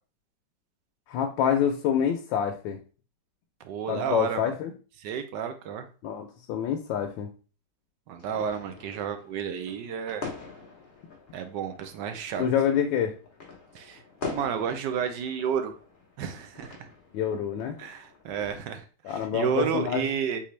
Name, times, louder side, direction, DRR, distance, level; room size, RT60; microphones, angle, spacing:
voice 1, 1.1-2.8 3.9-4.7 6.0-7.3 12.4-13.1 17.1-17.7 19.0-20.0, left 8 dB, 90° left, 3 dB, 1.3 m, -27 dB
voice 2, 3.6-4.5 5.0-5.9 8.1-10.3 11.3-12.5 13.7-14.0 14.3-15.8 16.2-16.9 17.8-20.4, right 7 dB, 75° right, 8 dB, 1.2 m, -31 dB
sound 1, 8.2-18.6, left 4 dB, 35° left, 1.0 m, -44 dB
4.2 x 3.7 x 3.1 m, 0.37 s
omnidirectional pair, 2.0 m